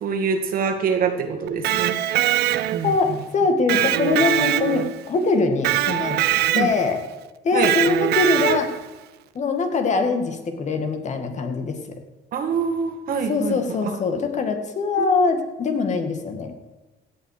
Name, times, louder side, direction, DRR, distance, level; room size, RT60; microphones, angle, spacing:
voice 1, 0.0-2.4 2.7-3.2 6.5-6.7 7.5-7.7 12.3-13.6 13.8-13.9 15.0-15.1, right 6 dB, 60° right, 5 dB, 2.0 m, -25 dB
Electric guitar, 1.5-3.0 3.7-5.1 5.6-6.9 7.6-8.9, right 13 dB, 75° right, 0.7 m, -22 dB
voice 2, 2.8-6.2 6.5-7.0 7.4-8.7 9.3-11.8 13.3-16.5, left 4 dB, 45° left, 6 dB, 2.2 m, -22 dB
16.0 x 8.7 x 5.0 m, 1.2 s
cardioid pair, 110°, 17 cm